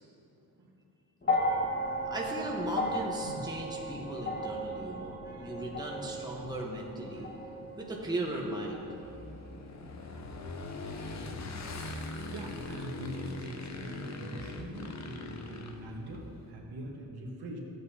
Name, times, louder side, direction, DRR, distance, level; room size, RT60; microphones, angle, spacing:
sound 1, 1.2-9.6 10.6-10.7, equal, 25° left, 1.4 m, -35 dB
voice 1, 2.0-7.3 7.7-8.9, right 1 dB, 10° right, -2 dB, 1.1 m, -37 dB
Motorcycle / Engine, 6.8-16.5, left 2 dB, 45° left, 0.8 m, -42 dB
voice 2, 12.3-17.6, right 1 dB, 75° right, -1 dB, 1.5 m, -43 dB
13.5 x 8.1 x 2.8 m, 2.6 s
cardioid pair, 110°, 39 cm